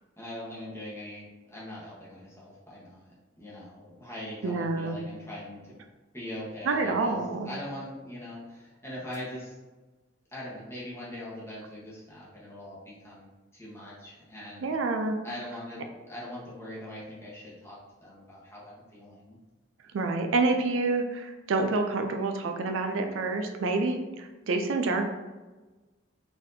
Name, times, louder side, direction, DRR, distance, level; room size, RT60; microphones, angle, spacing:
voice 1, 0.2-5.7 6.1-9.6 10.3-14.7 15.2-19.4, left 1 dB, 15° left, -7 dB, 1.0 m, -42 dB
voice 2, 4.4-5.0 6.6-7.5 14.6-15.1 19.9-25.0, right 3 dB, 85° right, 5 dB, 0.4 m, -28 dB
4.1 x 2.6 x 2.6 m, 1.2 s
head